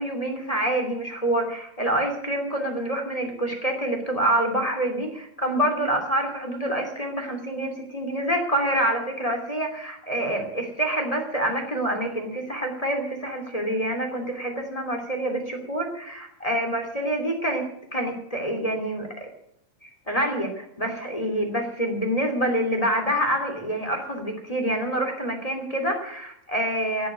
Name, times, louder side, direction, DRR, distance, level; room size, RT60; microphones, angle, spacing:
voice 1, 0.0-17.6 17.9-19.3 19.8-27.1, right 1 dB, 10° left, 3 dB, 2.3 m, -27 dB
16.0 x 7.6 x 9.1 m, 0.73 s
omnidirectional pair, 3.9 m